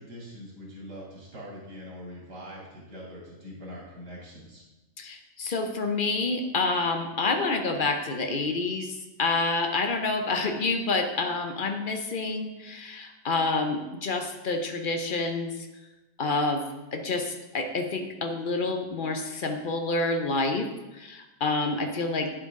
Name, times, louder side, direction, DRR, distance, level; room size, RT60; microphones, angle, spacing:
voice 1, 0.0-4.6, equal, 80° right, -5 dB, 3.4 m, -43 dB
voice 2, 5.0-15.5 16.2-16.6 16.9-20.7 21.0-22.3, left 3 dB, 50° left, 5 dB, 0.6 m, -28 dB
9.2 x 7.7 x 3.6 m, 1.1 s
omnidirectional pair, 1.7 m